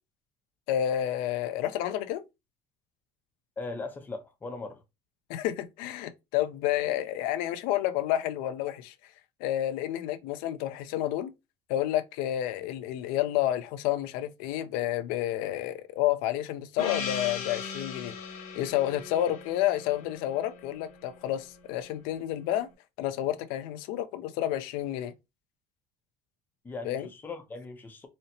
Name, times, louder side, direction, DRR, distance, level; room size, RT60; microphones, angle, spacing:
voice 1, 0.7-2.2 5.3-8.9 9.4-11.3 11.7-18.1 18.5-22.7 23.0-25.1 26.8-27.1, left 12 dB, 85° left, 0.4 m, -30 dB
voice 2, 3.6-4.8 26.6-28.1, left 3 dB, 15° left, 0.5 m, -39 dB
Gong, 16.8-21.5, left 6 dB, 65° left, 0.8 m, -39 dB
4.2 x 2.0 x 2.6 m
cardioid pair, 160°, 14 cm